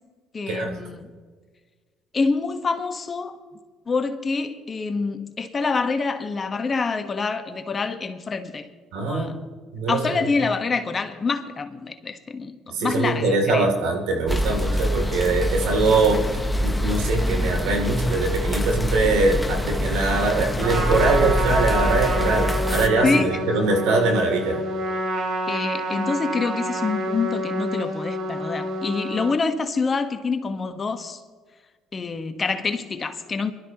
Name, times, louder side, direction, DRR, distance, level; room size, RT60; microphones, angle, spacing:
voice 1, 0.3-1.1 2.1-3.4 3.9-8.7 9.0-9.4 9.9-13.7 23.0-23.4 25.5-31.2 31.9-33.5, left 4 dB, 35° left, 1.3 m, -26 dB
voice 2, 8.9-9.4 9.7-10.0 12.7-16.2 16.6-24.6, right 3 dB, 80° right, 2.9 m, -22 dB
sound 1, 14.3-22.9, left 1 dB, 10° left, 1.1 m, -25 dB
Trumpet, 20.6-29.4, right 1 dB, 60° right, 2.9 m, -28 dB
23.5 x 12.5 x 3.0 m
supercardioid pair, 75°, 0 cm